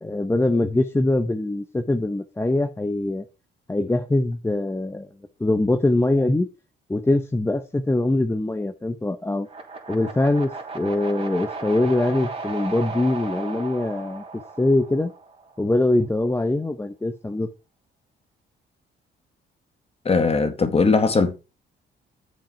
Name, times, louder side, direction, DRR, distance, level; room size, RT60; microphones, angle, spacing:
voice 1, 0.0-3.2 3.7-5.1 5.4-6.5 6.9-9.5 9.9-14.2 14.6-15.1 15.6-17.5, left 2 dB, 10° left, 0.7 m, -23 dB
sound 1, 9.4-15.6, right 4 dB, 30° right, 2.8 m, -35 dB
voice 2, 20.0-21.3, left 4 dB, 30° left, 1.6 m, -19 dB
7.4 x 5.2 x 5.6 m
cardioid pair, 90°, 20 cm